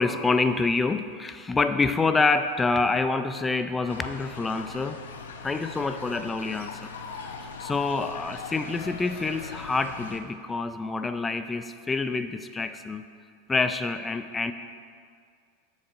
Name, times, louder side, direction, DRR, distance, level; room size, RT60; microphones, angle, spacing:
voice 1, 0.0-5.0 5.4-6.9 7.2-13.0 13.5-14.5, left 3 dB, 15° left, 9 dB, 0.3 m, -27 dB
sound 1, 3.9-10.2, left 5 dB, 90° left, 0.7 m, -40 dB
11.5 x 7.1 x 2.5 m, 2.1 s
hypercardioid pair, 120°, 0 cm